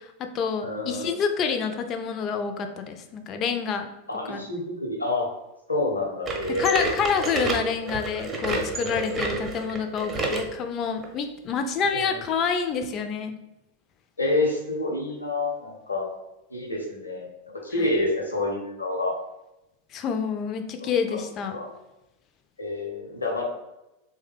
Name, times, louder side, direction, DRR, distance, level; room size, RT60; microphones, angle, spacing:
voice 1, 0.0-3.9 4.3-4.4 6.6-13.3 17.8-17.9 19.9-21.6, left 6 dB, 35° left, 6 dB, 0.4 m, -28 dB
voice 2, 0.6-1.1 4.1-5.3 5.7-6.9 11.9-12.2 14.2-16.1 16.5-17.3 17.6-19.1 20.8-21.2 21.5-21.7 22.6-23.4, left 2 dB, 80° left, 0 dB, 0.8 m, -28 dB
sound 1, 6.2-10.5 11.0-11.1 11.8-11.9 12.8-12.9, right 2 dB, 20° right, 0.6 m, -29 dB
3.2 x 2.1 x 3.5 m, 0.93 s
figure-of-eight pair, 90°, 0 cm